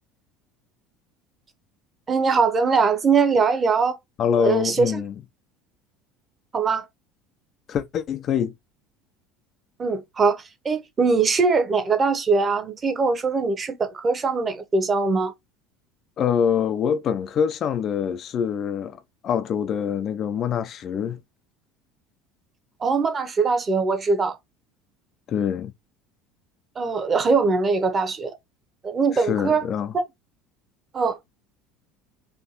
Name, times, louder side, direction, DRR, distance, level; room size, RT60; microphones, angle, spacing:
voice 1, 2.1-4.0 4.4-5.0 6.5-6.9 9.8-15.3 22.8-24.4 26.8-28.3 28.8-29.6 29.9-30.0 30.9-31.2, right 4 dB, 30° right, 0.9 m, -22 dB
voice 2, 4.2-5.2 7.7-8.5 16.2-19.0 19.2-21.2 25.3-25.7 29.1-29.9, left 8 dB, 40° left, 0.4 m, -25 dB
4.3 x 2.7 x 2.8 m
figure-of-eight pair, 65°, 0 cm